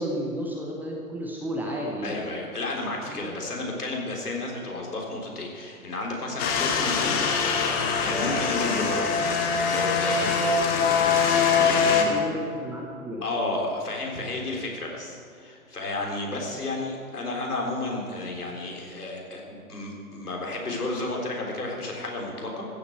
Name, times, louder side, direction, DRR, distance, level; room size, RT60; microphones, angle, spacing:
voice 1, 0.0-2.2 3.0-3.3 12.0-13.2, equal, 5° right, -2 dB, 0.7 m, -32 dB
voice 2, 2.0-7.2 7.7-10.7 11.3-12.1 13.2-22.7, left 2 dB, 75° left, 0 dB, 3.8 m, -32 dB
sound 1, 6.4-12.0, left 5 dB, 20° left, 1.2 m, -23 dB
14.5 x 8.1 x 7.9 m, 2.3 s
figure-of-eight pair, 120°, 46 cm